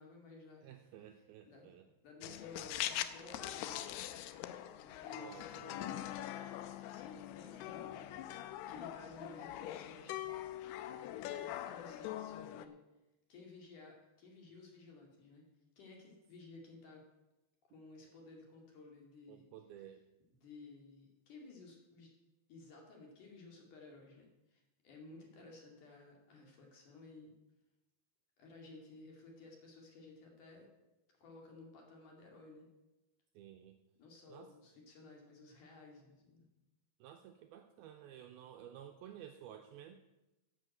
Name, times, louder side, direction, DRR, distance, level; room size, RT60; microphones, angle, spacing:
voice 1, 0.0-0.7 1.0-1.7 2.0-3.7 4.8-5.6 6.9-10.2 11.4-12.8 13.3-15.5 15.8-17.0 17.7-19.5 20.4-22.1 22.5-27.3 28.4-30.7 31.2-32.7 34.0-36.5, left 3 dB, 50° left, 0 dB, 3.6 m, -56 dB
voice 2, 0.6-1.8 5.1-5.9 19.3-20.0 33.4-33.8 34.3-34.5 37.0-40.0, right 10 dB, 85° right, 6 dB, 2.2 m, -53 dB
sound 1, 2.2-12.7, left 12 dB, 80° left, 2.5 m, -43 dB
11.0 x 8.4 x 7.8 m, 0.98 s
omnidirectional pair, 5.1 m